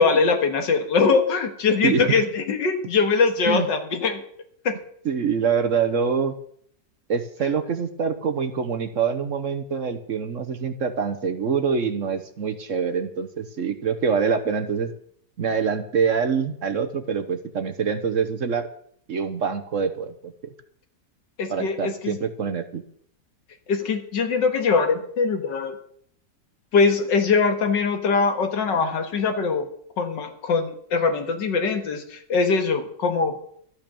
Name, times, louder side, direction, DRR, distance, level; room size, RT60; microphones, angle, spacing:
voice 1, 0.0-4.2 4.6-4.8 21.4-22.2 23.7-25.8 26.7-29.6 30.0-33.4, left 4 dB, 85° left, 6 dB, 2.2 m, -22 dB
voice 2, 5.0-6.3 7.1-14.9 15.4-18.7 19.1-20.3 21.5-22.8, right 6 dB, 55° right, 9 dB, 1.1 m, -25 dB
13.0 x 8.9 x 6.9 m, 0.64 s
omnidirectional pair, 1.9 m